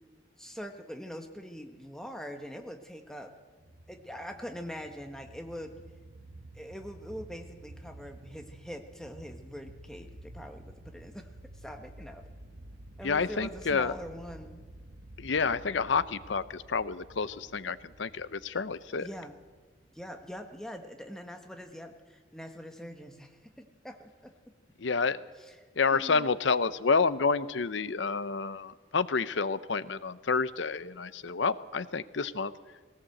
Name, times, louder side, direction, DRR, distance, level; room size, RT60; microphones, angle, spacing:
voice 1, 0.4-3.3 3.9-5.7 6.5-12.2 13.0-14.6 19.0-19.4 19.9-24.3 25.4-25.5 25.9-26.3, equal, 5° left, 5 dB, 1.4 m, -43 dB
sound 1, 3.6-20.6, right 1 dB, 90° right, 1.2 m, -51 dB
voice 2, 13.0-13.9 15.2-19.1 24.8-25.2 25.8-32.5, left 4 dB, 85° left, 15 dB, 0.7 m, -29 dB
18.5 x 18.0 x 7.9 m, 1.4 s
head